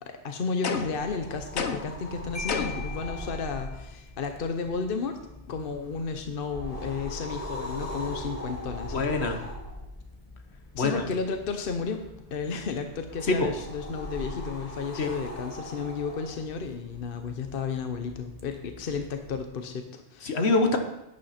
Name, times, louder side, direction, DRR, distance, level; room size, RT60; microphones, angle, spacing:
voice 1, 0.0-5.2 5.5-9.1 10.8-12.0 12.3-20.4, left 5 dB, 55° left, 6 dB, 1.0 m, -33 dB
sound 1, 0.6-1.1 1.6-2.0 2.5-2.9, left 5 dB, 90° left, 1.2 m, -31 dB
sound 2, 0.7-19.5, left 1 dB, 35° left, 1.4 m, -41 dB
Marimba xylophone, 2.3-4.1, left 5 dB, 10° right, 1.7 m, -40 dB
voice 2, 8.9-9.4 10.7-11.0 13.3-13.5 15.0-15.1 20.2-20.8, left 3 dB, 70° left, 5 dB, 1.4 m, -24 dB
11.5 x 9.6 x 4.3 m, 0.93 s
omnidirectional pair, 1.1 m